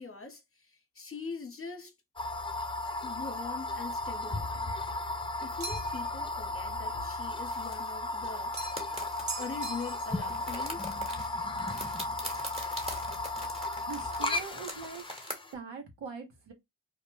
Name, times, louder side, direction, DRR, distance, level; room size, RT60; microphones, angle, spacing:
voice 1, 0.0-1.9 3.0-4.7 5.4-8.5 9.4-10.9, left 4 dB, 30° left, 0.8 m, -42 dB
sound 1, 2.2-15.5, left 2 dB, 10° left, 0.4 m, -35 dB
sound 2, 5.6-6.1 8.5-8.9 9.3-10.2, right 4 dB, 40° right, 0.8 m, -40 dB
sound 3, 7.4-9.8 10.1-15.3, equal, 15° right, 1.0 m, -43 dB
voice 2, 13.9-15.0 15.5-16.5, right 5 dB, 70° right, 1.0 m, -42 dB
2.3 x 2.1 x 3.0 m
cardioid pair, 50°, 45 cm